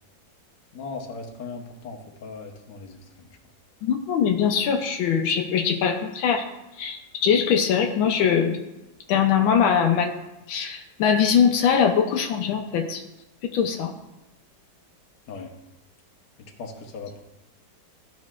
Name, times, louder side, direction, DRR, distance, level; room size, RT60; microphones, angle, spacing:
voice 1, 0.7-3.3 15.3-15.5 16.4-17.2, left 4 dB, 60° left, 1 dB, 1.4 m, -38 dB
voice 2, 3.8-6.4 6.8-8.6 9.1-10.1 10.5-13.0 13.5-13.9, left 7 dB, 85° left, 4 dB, 1.4 m, -22 dB
13.0 x 4.5 x 2.4 m, 0.94 s
omnidirectional pair, 2.2 m